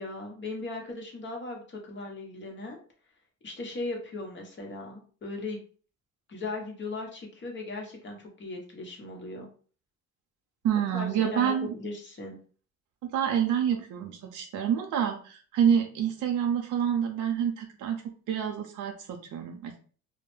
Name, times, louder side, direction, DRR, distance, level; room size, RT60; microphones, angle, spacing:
voice 1, 0.0-2.8 3.4-5.6 6.3-9.5 10.9-12.4, left 3 dB, 40° left, 1 dB, 0.9 m, -38 dB
voice 2, 10.6-11.7 13.1-18.0 18.3-19.8, right 8 dB, 80° right, 3 dB, 0.5 m, -27 dB
2.2 x 2.1 x 3.1 m, 0.41 s
cardioid pair, 90°, 30 cm